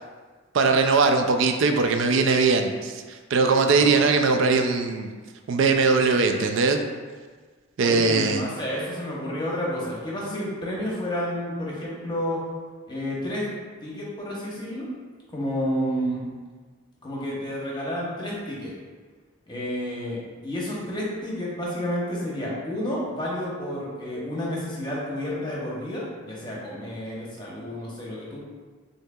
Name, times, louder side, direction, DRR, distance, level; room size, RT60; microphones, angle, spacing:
voice 1, 0.5-5.1 5.5-6.8 7.8-8.4, right 4 dB, 60° right, 5 dB, 0.4 m, -20 dB
voice 2, 3.7-4.0 7.8-12.5 12.9-13.5 13.8-14.9 15.3-16.3 17.0-18.7 19.5-28.4, equal, 20° left, -5 dB, 0.9 m, -30 dB
6.3 x 2.8 x 2.3 m, 1.5 s
head